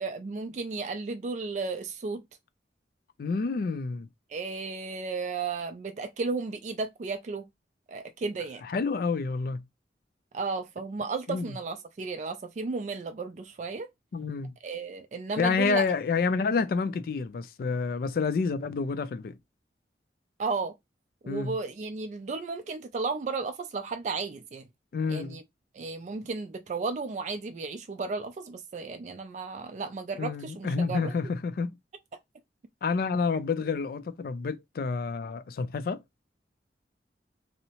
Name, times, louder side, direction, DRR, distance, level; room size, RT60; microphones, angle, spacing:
voice 1, 0.0-2.2 4.3-7.5 7.9-8.6 10.3-13.9 14.6-15.8 20.4-20.7 21.2-24.7 25.1-25.4 25.7-31.1, right 4 dB, 40° right, 0.3 m, -34 dB
voice 2, 3.2-4.1 8.6-9.6 11.3-11.5 14.1-14.5 15.4-19.4 21.3-21.6 24.9-25.4 30.2-31.8 32.8-36.0, left 4 dB, 55° left, 0.3 m, -29 dB
2.7 x 2.0 x 2.8 m
head